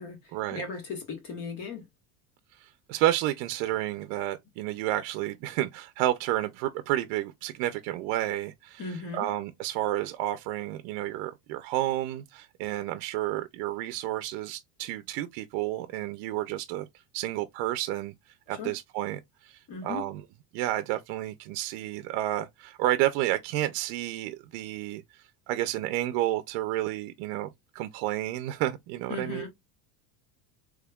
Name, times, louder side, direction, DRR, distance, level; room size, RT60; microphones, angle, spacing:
voice 1, 0.0-1.9 8.8-9.3 18.5-18.7 19.7-20.1 29.1-29.5, left 4 dB, 45° left, 1.7 m, -37 dB
voice 2, 2.6-8.8 9.1-16.9 17.1-18.1 18.5-20.2 20.5-25.0 25.5-29.4, right 14 dB, 70° right, 0.6 m, -30 dB
3.5 x 3.2 x 2.3 m
cardioid pair, 130°, 46 cm